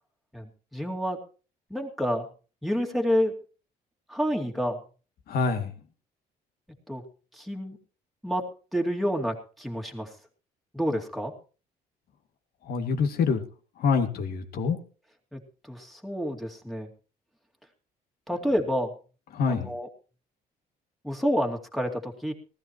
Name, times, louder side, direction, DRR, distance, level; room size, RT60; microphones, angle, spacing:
voice 1, 0.3-1.2 1.7-2.2 2.6-3.3 4.1-4.8 6.9-7.0 7.3-7.8 8.2-8.4 8.7-10.1 10.7-11.3 15.3-15.4 15.7-16.9 18.3-18.9 19.5-19.9 21.0-22.3, equal, ahead, 2 dB, 2.5 m, -28 dB
voice 2, 5.3-5.7 12.7-13.4 13.8-14.8 19.3-19.7, left 5 dB, 65° left, 7 dB, 2.3 m, -26 dB
19.0 x 14.0 x 3.1 m, 0.37 s
cardioid pair, 110°, 17 cm